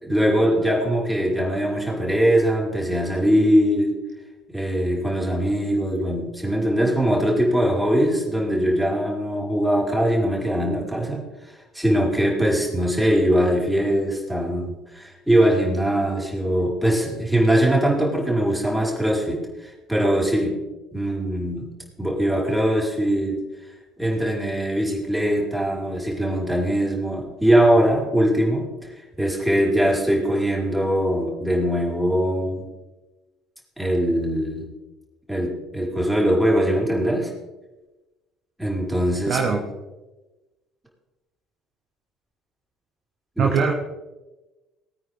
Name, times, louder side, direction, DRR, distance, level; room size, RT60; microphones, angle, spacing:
voice 1, 0.0-3.9 4.5-20.5 20.9-21.7 22.0-23.4 24.0-32.6 33.8-34.7 35.3-37.3 38.6-39.6 43.4-43.5, equal, ahead, -3 dB, 4.6 m, -21 dB
voice 2, 39.3-39.6 43.4-43.7, right 6 dB, 45° right, 2 dB, 1.5 m, -21 dB
21.0 x 9.2 x 3.6 m, 1.1 s
figure-of-eight pair, 55°, 0 cm